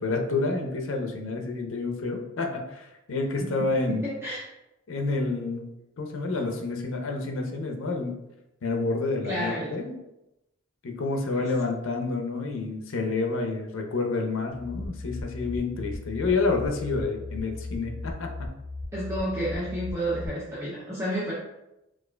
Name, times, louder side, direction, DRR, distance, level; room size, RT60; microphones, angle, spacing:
voice 1, 0.0-4.1 4.9-5.6 6.0-8.1 8.6-9.9 10.8-18.5, left 3 dB, 75° left, 3 dB, 0.6 m, -29 dB
voice 2, 3.9-4.5 9.2-9.8 18.9-21.4, right 1 dB, 15° right, -7 dB, 0.5 m, -30 dB
sound 1, 14.5-20.3, left 2 dB, 35° right, 1.3 m, -37 dB
4.5 x 2.4 x 2.2 m, 0.91 s
head